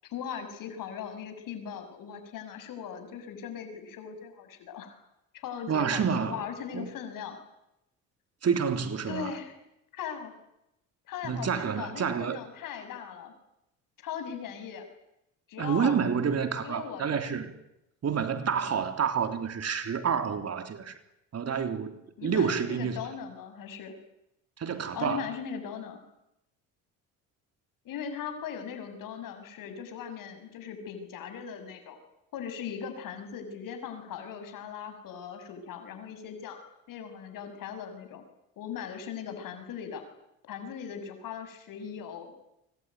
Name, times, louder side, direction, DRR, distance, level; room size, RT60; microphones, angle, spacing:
voice 1, 0.0-5.0 5.3-7.4 9.1-9.5 9.9-10.3 11.1-13.3 14.0-14.9 15.5-15.9 16.6-17.4 22.2-24.0 24.9-26.0 27.8-32.0 32.3-36.6 36.9-38.2 38.6-40.0 40.5-42.3, left 7 dB, 65° left, 6.7 m, -39 dB
voice 2, 5.7-6.4 6.7-6.9 8.4-9.3 11.2-12.4 15.6-17.5 18.0-21.0 21.3-23.0 24.6-25.3, right 6 dB, 45° right, 3.5 m, -29 dB
25.0 x 25.0 x 9.5 m
supercardioid pair, 70°, 36 cm